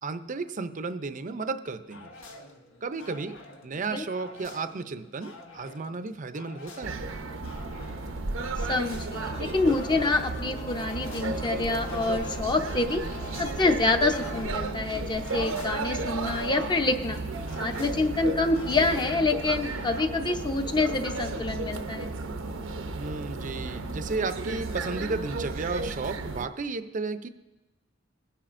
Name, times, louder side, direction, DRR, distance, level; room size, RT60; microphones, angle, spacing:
voice 1, 0.0-2.1 2.8-7.0 22.9-27.3, right 3 dB, 40° right, 10 dB, 0.5 m, -33 dB
sound 1, 1.9-20.0, left 2 dB, 80° left, 1.3 m, -48 dB
sound 2, 6.8-26.5, right 3 dB, 90° right, 0.8 m, -34 dB
voice 2, 8.7-13.0 13.4-17.2 17.6-22.1, left 3 dB, 25° left, 6 dB, 0.7 m, -27 dB
sound 3, 9.1-14.4, left 1 dB, 45° left, 2.9 m, -43 dB
21.0 x 10.0 x 2.6 m, 1.1 s
head